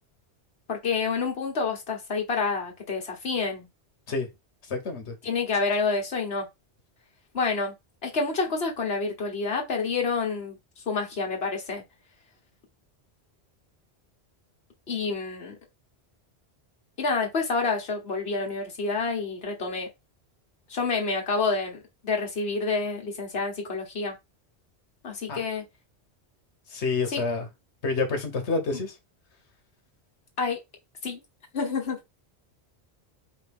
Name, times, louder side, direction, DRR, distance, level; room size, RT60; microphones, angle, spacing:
voice 1, 0.7-3.7 5.2-6.5 7.3-7.7 8.0-10.6 10.9-11.8 14.9-15.6 17.0-19.9 20.7-24.2 25.0-25.6 27.1-27.2 30.4-30.6 31.0-31.2 31.5-32.0, left 4 dB, 65° left, 1.6 m, -28 dB
voice 2, 4.7-5.1 25.3-25.4 26.7-27.5 27.8-28.9, left 4 dB, 85° left, 1.4 m, -28 dB
4.8 x 2.6 x 3.4 m
omnidirectional pair, 1.1 m